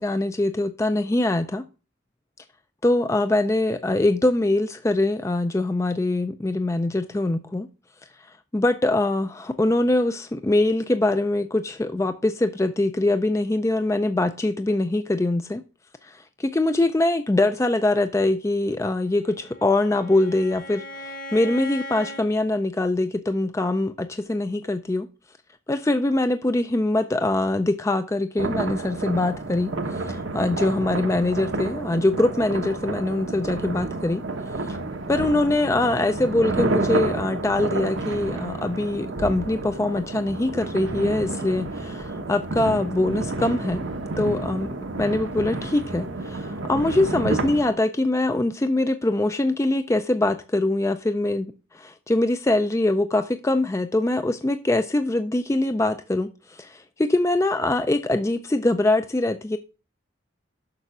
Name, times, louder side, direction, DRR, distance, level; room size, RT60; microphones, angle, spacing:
voice 1, 0.0-1.6 2.8-7.7 8.5-15.6 16.0-25.1 25.7-34.2 34.6-34.8 35.1-43.9 44.2-44.7 45.0-51.5 51.7-59.6, left 2 dB, 15° left, 0.3 m, -23 dB
Bowed string instrument, 19.1-22.3, left 1 dB, 75° left, 2.2 m, -38 dB
sound 1, 28.4-47.7, right 2 dB, 75° right, 1.0 m, -30 dB
6.7 x 5.8 x 5.9 m
head